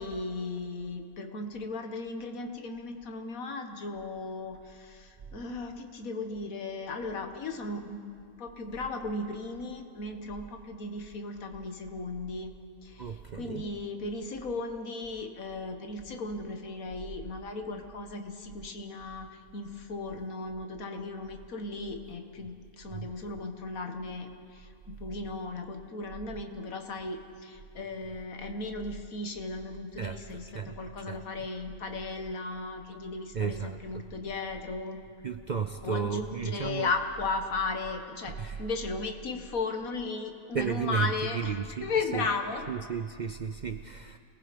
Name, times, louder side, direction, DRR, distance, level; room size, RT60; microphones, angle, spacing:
voice 1, 0.0-8.1 8.4-12.5 12.8-35.0 35.8-41.5 41.8-42.7, left 3 dB, 80° left, 5 dB, 1.9 m, -36 dB
voice 2, 13.0-13.6 22.9-23.1 30.0-30.7 31.1-31.2 33.3-34.1 35.2-36.9 38.4-38.6 40.5-42.3 42.7-44.2, right 6 dB, 50° right, 8 dB, 0.5 m, -33 dB
27.0 x 19.0 x 5.2 m, 2.3 s
omnidirectional pair, 1.4 m